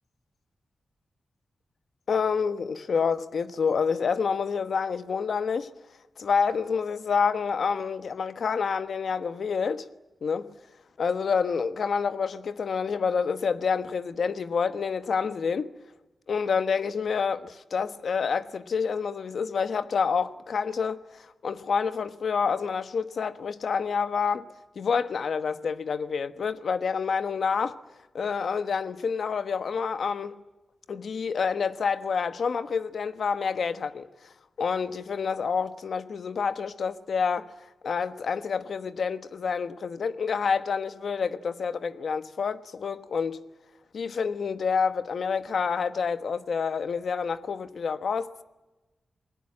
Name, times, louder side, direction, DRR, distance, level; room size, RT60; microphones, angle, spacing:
voice 1, 2.1-5.7 6.2-9.9 10.2-10.5 11.0-15.7 16.3-24.5 24.7-27.8 28.1-30.4 30.9-37.5 37.8-43.4 43.9-48.4, left 5 dB, 65° left, 1.2 m, -28 dB
28.0 x 20.0 x 8.8 m
wide cardioid pair, 140°, 0 cm